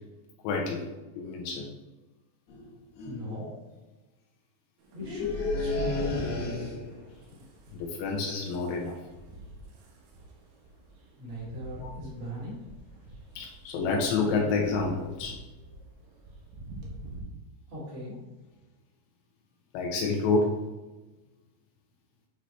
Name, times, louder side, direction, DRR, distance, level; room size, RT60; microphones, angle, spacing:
voice 1, 0.4-0.9 1.1-1.7 3.3-3.5 7.7-9.0 11.8-11.9 13.4-15.3 19.7-20.6, left 4 dB, 85° left, -1 dB, 3.0 m, -28 dB
sound 1, 2.5-2.7 3.0-3.3 5.0-7.0, left 2 dB, 70° left, 1.9 m, -31 dB
voice 2, 3.0-3.5 4.9-6.8 11.2-12.6 17.7-18.2, equal, 40° right, -11 dB, 2.3 m, -38 dB
sound 2, 4.8-17.2, right 2 dB, 80° right, 3.2 m, -49 dB
9.2 x 4.0 x 3.2 m, 1.1 s
omnidirectional pair, 5.0 m